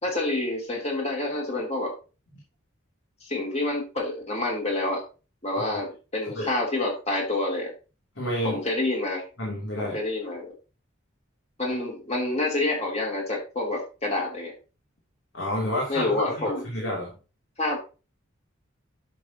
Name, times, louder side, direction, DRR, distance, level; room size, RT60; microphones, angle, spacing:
voice 1, 0.0-1.9 3.2-5.0 5.4-7.7 8.4-9.2 9.8-10.5 11.6-14.5 15.9-16.6 17.6-17.8, left 2 dB, 30° left, -1 dB, 3.1 m, -28 dB
voice 2, 8.1-8.6 9.4-10.3 15.3-17.1, equal, 65° left, -4 dB, 3.1 m, -30 dB
10.5 x 6.8 x 3.0 m, 0.33 s
head